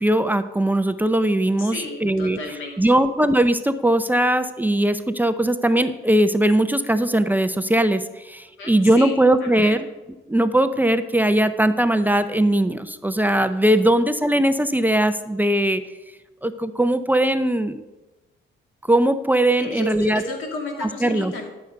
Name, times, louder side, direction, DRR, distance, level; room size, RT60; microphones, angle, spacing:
voice 1, 0.0-2.4 2.8-9.9 10.3-15.8 16.4-17.8 18.9-20.2 20.8-21.3, right 1 dB, 10° right, 10 dB, 0.6 m, -20 dB
voice 2, 1.6-2.9 8.6-9.2 9.4-9.8 19.6-21.5, left 2 dB, 85° left, 2 dB, 2.4 m, -33 dB
12.0 x 6.8 x 5.2 m, 1.1 s
cardioid pair, 90°, 20 cm